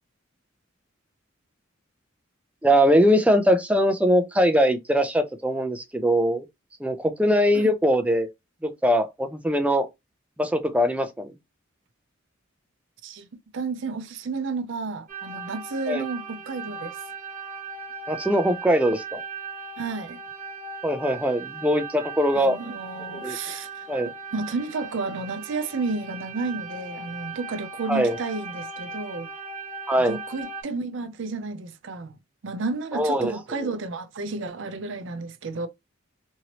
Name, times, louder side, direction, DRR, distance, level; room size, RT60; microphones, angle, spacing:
voice 1, 2.6-6.4 6.8-8.3 8.6-9.9 10.4-11.3 15.9-16.0 18.1-19.2 20.8-22.6 23.2-23.4 23.9-24.1 27.9-28.2 29.9-30.2 32.9-33.3, equal, 5° right, 0.4 m, -21 dB
voice 2, 13.5-16.9 19.8-20.2 22.3-23.9 24.3-29.3 30.0-32.2 32.4-35.7, right 3 dB, 65° right, 0.5 m, -31 dB
sound 1, 15.1-30.6, right 4 dB, 40° right, 0.8 m, -38 dB
3.0 x 2.7 x 2.9 m
head